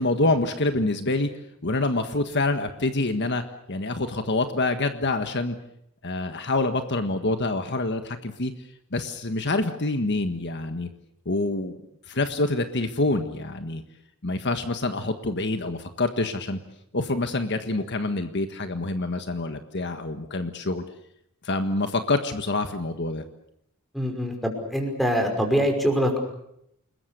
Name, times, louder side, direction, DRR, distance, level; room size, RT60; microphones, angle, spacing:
voice 1, 0.0-1.3 1.6-3.4 3.7-5.6 6.0-8.5 8.9-10.9 11.2-11.8 12.1-13.8 14.2-16.6 16.9-20.8 21.4-23.2, left 2 dB, 55° left, 8 dB, 1.6 m, -26 dB
voice 2, 23.9-26.2, equal, ahead, 4 dB, 5.6 m, -24 dB
29.5 x 21.0 x 6.9 m, 0.76 s
head